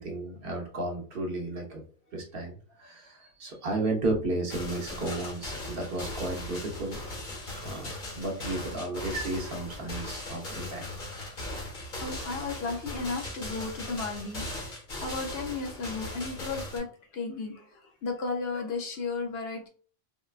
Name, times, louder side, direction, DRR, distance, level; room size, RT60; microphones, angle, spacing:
voice 1, 0.0-1.8 2.1-7.0 7.4-11.1, right 2 dB, 55° right, 0 dB, 0.8 m, -33 dB
sound 1, 4.5-16.8, left 1 dB, 50° left, 1.0 m, -38 dB
voice 2, 12.0-16.9 17.1-19.7, left 4 dB, 65° left, 3 dB, 0.7 m, -34 dB
3.7 x 2.2 x 2.3 m, 0.41 s
omnidirectional pair, 1.2 m